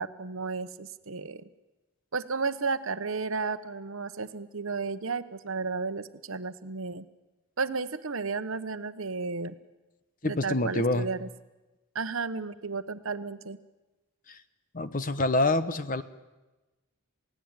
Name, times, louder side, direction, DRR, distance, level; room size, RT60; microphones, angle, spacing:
voice 1, 0.0-1.4 2.1-7.1 7.6-9.5 10.2-11.3 11.9-13.6, right 4 dB, 65° right, 12 dB, 1.0 m, -33 dB
voice 2, 10.2-11.1 14.3-14.4 14.7-16.0, left 2 dB, 35° left, 12 dB, 0.9 m, -26 dB
28.0 x 17.0 x 8.9 m, 1.1 s
head